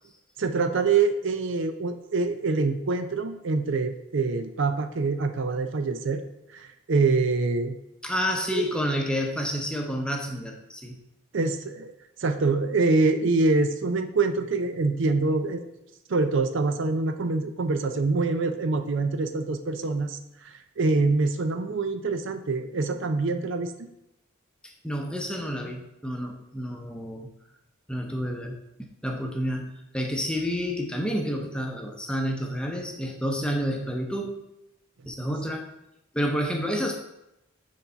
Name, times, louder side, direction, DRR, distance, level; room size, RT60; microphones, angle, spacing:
voice 1, 0.4-6.2 6.5-7.7 8.5-8.7 11.3-11.9 12.2-15.6 16.1-23.7, right 3 dB, 60° right, 8 dB, 0.5 m, -25 dB
voice 2, 8.0-11.0 24.6-27.3 27.9-34.3 35.1-35.7 36.1-36.9, equal, 5° left, 1 dB, 0.8 m, -29 dB
6.3 x 4.0 x 5.6 m, 0.86 s
head